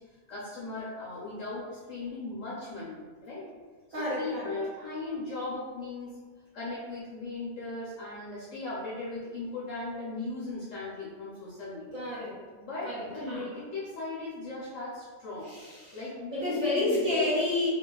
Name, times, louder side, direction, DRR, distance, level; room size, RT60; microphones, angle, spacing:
voice 1, 0.3-3.5 3.9-6.1 6.5-12.0 12.5-15.5 15.9-17.3, left 3 dB, 65° left, -8 dB, 0.8 m, -37 dB
voice 2, 3.9-4.6 11.9-12.4 12.8-13.5 15.4-16.0 16.3-17.7, left 2 dB, 60° right, -8 dB, 1.0 m, -30 dB
2.8 x 2.6 x 2.3 m, 1.4 s
omnidirectional pair, 1.8 m